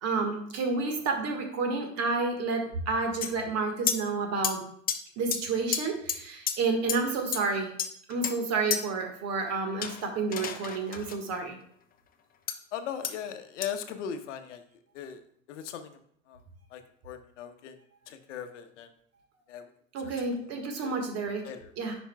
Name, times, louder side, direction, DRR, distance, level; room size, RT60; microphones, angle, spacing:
voice 1, 0.0-4.6 5.2-7.7 8.1-11.5 19.9-21.4 21.8-21.9, right 4 dB, 40° right, 4 dB, 1.6 m, -30 dB
sound 1, 3.2-3.3 3.9-4.0 4.4-4.5 4.9-5.0 5.3-5.4 5.7-5.8 6.1-6.2 6.5-6.6 6.9-7.0 7.3-7.4 7.8-8.3 8.7-8.8 9.8-11.2 12.5-12.6 13.0-13.1 13.6-13.7, left 8 dB, 25° left, 0.6 m, -30 dB
voice 2, 12.7-14.6 14.9-15.2 15.5-15.9 16.3-16.4 16.7-17.8 18.1-18.9 19.5-19.6 20.0-20.1 20.5-20.6 20.8-20.9 21.4-21.7, left 8 dB, 70° left, 8 dB, 0.8 m, -38 dB
10.0 x 5.1 x 2.2 m, 0.64 s
hypercardioid pair, 90°, 38 cm